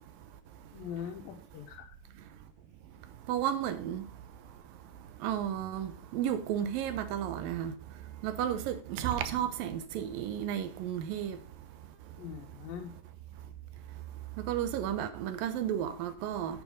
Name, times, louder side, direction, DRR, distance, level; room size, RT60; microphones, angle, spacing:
voice 1, 0.7-2.0 12.2-13.0, left 8 dB, 80° left, 2.7 m, -42 dB
voice 2, 3.3-4.1 4.7-4.8 5.2-7.8 8.2-11.4 14.4-16.6, right 10 dB, 80° right, 2.6 m, -33 dB
8.5 x 7.2 x 5.3 m
omnidirectional pair, 4.1 m